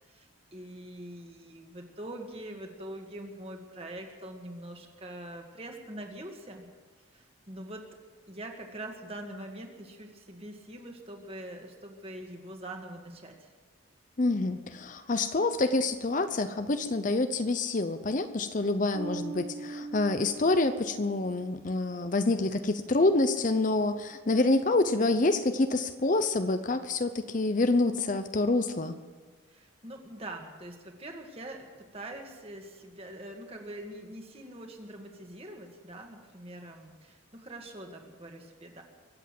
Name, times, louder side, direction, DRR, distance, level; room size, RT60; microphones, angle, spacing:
voice 1, 0.1-6.7 7.1-7.9 8.3-13.5 29.5-38.8, right 1 dB, 30° right, 2 dB, 1.9 m, -43 dB
voice 2, 14.2-28.9, left 2 dB, 40° left, 10 dB, 0.7 m, -27 dB
Bass guitar, 18.9-21.6, right 3 dB, 85° right, 2.6 m, -41 dB
23.5 x 8.2 x 7.6 m, 1.4 s
head